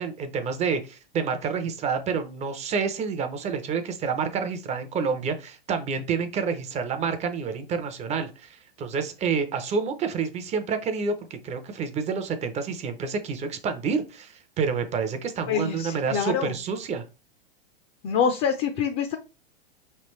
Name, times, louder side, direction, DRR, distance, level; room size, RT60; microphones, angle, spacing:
voice 1, 0.0-17.0, right 5 dB, 20° right, 8 dB, 0.6 m, -28 dB
voice 2, 15.5-16.5 18.0-19.2, left 7 dB, 35° left, 6 dB, 0.6 m, -25 dB
5.0 x 3.3 x 3.1 m, 0.30 s
hypercardioid pair, 120°, 30 cm